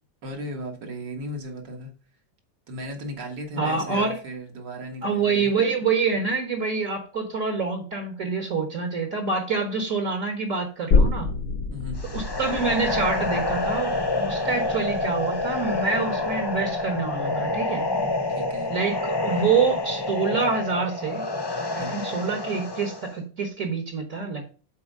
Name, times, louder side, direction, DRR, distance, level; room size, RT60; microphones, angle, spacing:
voice 1, 0.2-1.9 2.7-5.5 11.7-12.0 18.3-18.7 21.7-22.0, equal, 70° right, 2 dB, 2.2 m, -36 dB
voice 2, 3.6-4.2 5.0-11.3 12.1-17.8 18.7-21.3 21.7-24.4, right 5 dB, 50° right, 4 dB, 1.5 m, -26 dB
sound 1, 10.9-18.2 18.5-18.6, left 4 dB, 60° left, 1.2 m, -28 dB
sound 2, 12.0-23.1, left 2 dB, 35° left, 0.4 m, -28 dB
7.2 x 4.4 x 5.4 m, 0.36 s
omnidirectional pair, 2.0 m